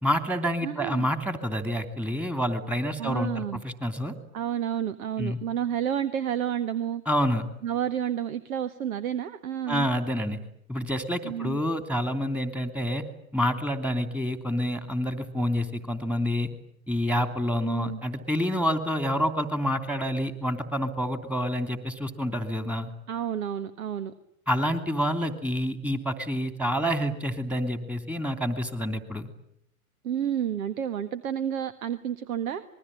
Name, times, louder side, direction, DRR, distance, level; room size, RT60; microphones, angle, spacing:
voice 1, 0.0-4.1 5.2-5.4 7.1-7.4 9.7-10.4 10.7-13.0 13.3-16.5 16.9-22.9 24.5-29.3, equal, 5° right, 9 dB, 2.9 m, -28 dB
voice 2, 0.6-1.1 3.0-3.6 4.3-7.0 7.6-9.9 11.2-11.6 17.6-18.0 23.1-24.1 30.0-32.6, right 9 dB, 70° right, 13 dB, 1.6 m, -30 dB
26.0 x 21.5 x 9.9 m, 0.70 s
hypercardioid pair, 110°, 44 cm